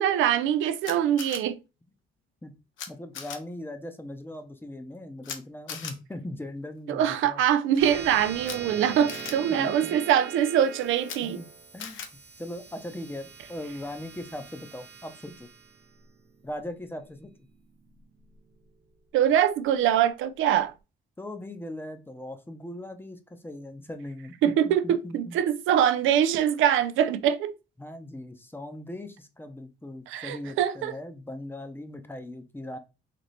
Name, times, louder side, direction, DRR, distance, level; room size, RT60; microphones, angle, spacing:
voice 1, 0.0-1.6 6.9-11.4 19.1-20.7 24.4-27.5 30.1-31.0, right 10 dB, 85° right, 0.4 m, -23 dB
Camera, 0.8-1.4 2.8-2.9 3.1-3.4 5.2-5.4 5.7-5.9 8.4-8.6 9.1-9.3 11.0-11.2 11.8-12.1, left 7 dB, 75° left, 0.8 m, -37 dB
voice 2, 2.9-7.4 9.5-9.9 11.2-11.5 11.7-12.0 12.4-15.5 16.4-17.3 21.2-25.4 27.8-32.8, left 1 dB, 10° left, 0.7 m, -39 dB
sound 1, 7.8-18.6, right 6 dB, 55° right, 0.7 m, -42 dB
4.1 x 2.8 x 3.2 m
cardioid pair, 90°, 20 cm